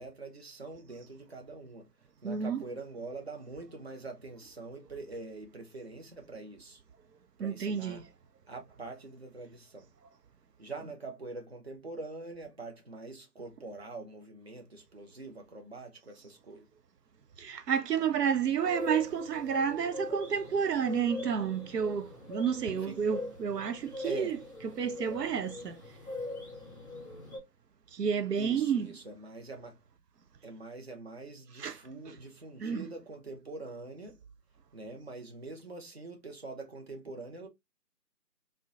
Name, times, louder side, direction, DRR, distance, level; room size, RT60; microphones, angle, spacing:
voice 1, 0.0-1.9 2.2-6.8 7.4-8.0 8.5-9.9 10.6-16.7 22.8-23.0 24.0-24.4 28.4-29.7 30.4-34.2 34.7-37.5, right 3 dB, 40° right, 0.6 m, -44 dB
voice 2, 2.2-2.6 7.4-8.0 17.4-24.4 24.6-25.8 27.9-28.9 31.6-31.8 32.1-32.2 32.6-32.9, right 7 dB, 80° right, 0.6 m, -30 dB
sound 1, 18.6-27.4, left 2 dB, 10° right, 1.0 m, -42 dB
3.7 x 2.1 x 2.5 m
figure-of-eight pair, 165°, 48 cm